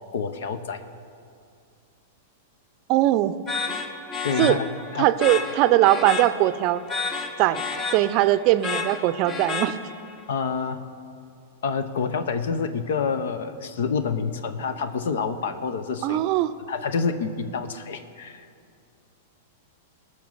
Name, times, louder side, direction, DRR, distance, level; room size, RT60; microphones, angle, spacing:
voice 1, 0.1-0.8 4.2-4.6 4.9-5.1 10.3-10.8 11.6-16.3 16.7-18.5, left 5 dB, 70° left, 10 dB, 0.8 m, -27 dB
voice 2, 2.9-3.4 4.4-4.6 5.0-6.8 7.4-7.6 7.9-9.8 16.0-16.5, right 15 dB, 45° right, 14 dB, 0.5 m, -20 dB
sound 1, 3.5-10.2, left 4 dB, 30° left, 1.2 m, -31 dB
19.0 x 6.5 x 5.5 m, 2.4 s
hypercardioid pair, 110°, 0 cm